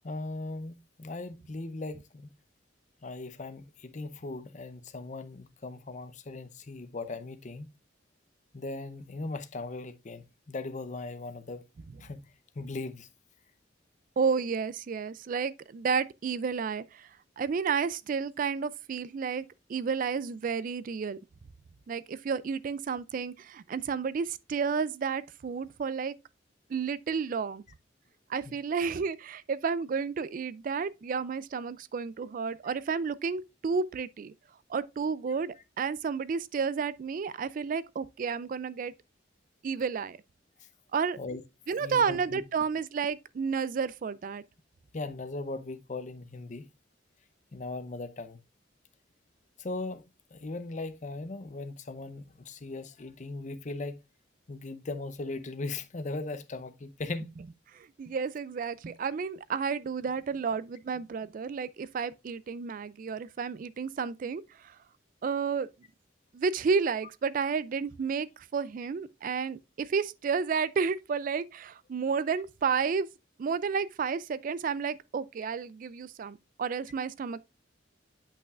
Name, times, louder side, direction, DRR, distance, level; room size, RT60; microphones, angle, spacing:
voice 1, 0.0-2.3 3.0-7.7 8.5-11.6 12.0-12.2 12.6-13.1 28.4-28.5 32.7-32.8 41.2-41.4 41.8-42.4 44.9-46.7 47.5-48.4 49.6-50.0 50.3-54.0 54.5-57.3, left 2 dB, 40° left, 0.6 m, -38 dB
voice 2, 14.2-17.1 17.4-19.4 19.7-21.2 21.9-26.1 26.7-27.6 28.3-34.3 34.7-38.9 39.6-40.2 40.9-41.2 41.7-44.4 57.7-64.7 65.2-65.7 66.3-73.1 73.4-77.4, right 5 dB, 45° right, 0.3 m, -31 dB
8.6 x 5.6 x 2.4 m
head